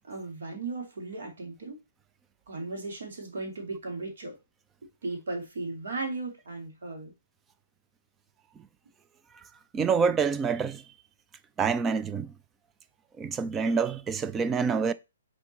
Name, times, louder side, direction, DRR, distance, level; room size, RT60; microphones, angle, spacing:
voice 1, 0.0-1.8 2.5-4.3 5.0-7.1, right 3 dB, 70° right, 2.7 m, -36 dB
voice 2, 9.7-10.8 11.6-12.3 13.2-14.9, right 5 dB, 15° right, 0.3 m, -27 dB
6.0 x 3.7 x 4.3 m
hypercardioid pair, 155°, 0 cm